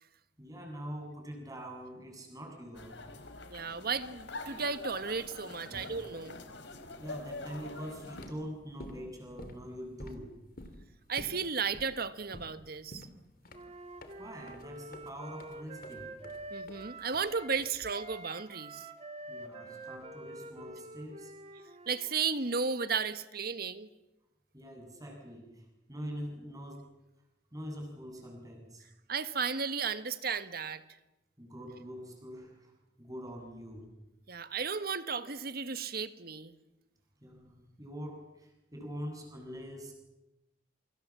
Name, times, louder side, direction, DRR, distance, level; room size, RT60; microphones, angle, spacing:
voice 1, 0.4-3.0 5.7-5.9 7.0-10.3 14.2-16.1 19.3-21.3 24.5-26.8 27.5-28.9 31.4-33.9 37.2-39.9, equal, 20° right, 2 dB, 7.8 m, -44 dB
sound 1, 2.7-8.2, left 2 dB, 90° left, 3.9 m, -45 dB
voice 2, 3.5-6.4 11.1-13.1 16.5-18.9 21.9-23.9 29.1-30.8 34.3-36.5, right 5 dB, 55° right, 11 dB, 1.5 m, -34 dB
sound 2, 8.1-18.2, left 1 dB, 55° left, 3.0 m, -50 dB
Wind instrument woodwind instrument, 13.5-17.6 17.9-22.1, right 2 dB, 35° right, 2.4 m, -47 dB
28.0 x 25.5 x 7.5 m, 0.97 s
head